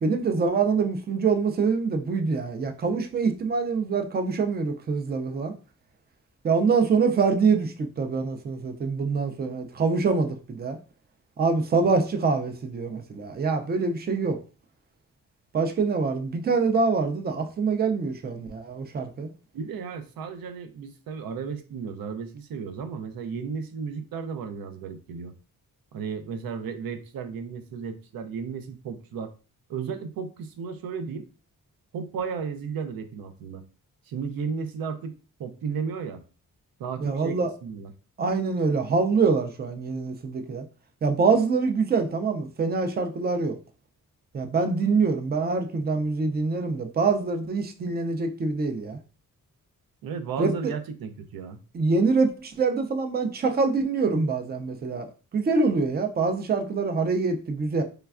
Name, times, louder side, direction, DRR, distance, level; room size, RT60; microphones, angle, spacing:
voice 1, 0.0-5.5 6.4-10.8 11.4-14.4 15.5-19.3 37.0-37.5 38.2-40.6 41.0-43.6 44.3-49.0 50.4-50.7 51.7-57.8, right 4 dB, 30° right, 0.3 m, -25 dB
voice 2, 19.5-25.3 25.9-29.3 29.7-31.3 31.9-33.6 34.1-36.2 36.8-37.9 50.0-51.6, right 6 dB, 85° right, 0.5 m, -34 dB
3.2 x 2.2 x 2.3 m
wide cardioid pair, 130°, 34 cm